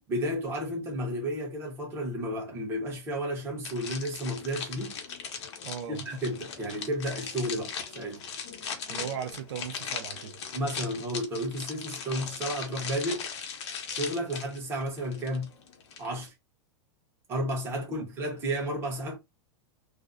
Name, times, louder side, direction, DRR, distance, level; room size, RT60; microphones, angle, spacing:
voice 1, 0.1-5.0 5.9-8.2 10.5-13.3 13.9-15.5 16.0-16.3 17.3-19.2, equal, 15° right, 0.8 m, -32 dB
sound 1, 3.6-16.3, left 6 dB, 75° left, 0.8 m, -39 dB
voice 2, 5.6-6.0 8.9-10.4 17.8-18.1, right 8 dB, 75° right, 0.6 m, -38 dB
2.5 x 2.1 x 2.4 m
supercardioid pair, 170°, 15 cm